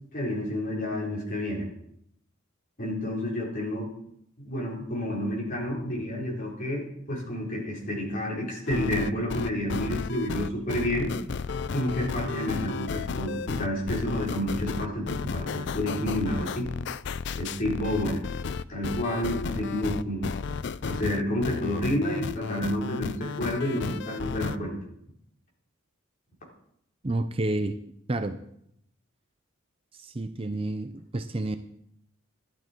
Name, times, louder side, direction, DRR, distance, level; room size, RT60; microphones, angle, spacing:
voice 1, 0.1-1.7 2.8-3.9 4.4-11.1 11.7-16.7 17.3-18.3 18.7-20.3 20.9-24.8, left 1 dB, 40° left, -3 dB, 4.6 m, -30 dB
sound 1, 8.7-24.6, left 5 dB, 55° left, 0.4 m, -33 dB
voice 2, 27.0-27.7 28.1-28.4 30.0-31.6, right 2 dB, 25° right, 9 dB, 0.6 m, -29 dB
14.0 x 11.5 x 4.6 m, 0.74 s
head